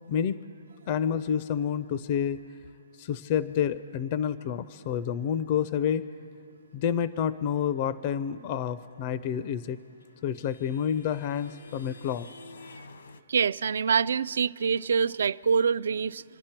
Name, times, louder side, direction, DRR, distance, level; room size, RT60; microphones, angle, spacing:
voice 1, 0.1-0.4 0.9-2.4 3.0-6.1 6.7-9.8 10.2-12.3, left 8 dB, 30° left, 0.4 m, -29 dB
sound 1, 9.3-13.2, left 3 dB, 80° left, 1.0 m, -50 dB
voice 2, 13.3-16.2, right 6 dB, 70° right, 0.3 m, -25 dB
27.0 x 11.0 x 4.4 m
hypercardioid pair, 165°, 0 cm